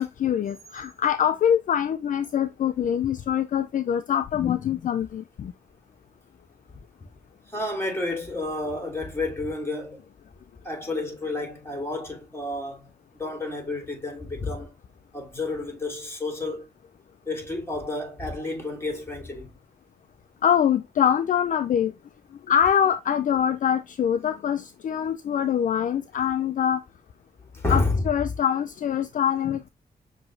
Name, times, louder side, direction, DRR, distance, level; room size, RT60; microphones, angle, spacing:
voice 1, 0.0-5.5 20.4-21.9 22.5-26.8 27.7-29.7, left 9 dB, 55° left, 0.4 m, -24 dB
voice 2, 7.5-10.1 10.6-12.9 13.2-14.7 15.1-16.6 17.3-19.6 27.5-28.1, left 2 dB, 15° left, 2.5 m, -30 dB
6.1 x 3.0 x 2.5 m
cardioid pair, 60°, 16 cm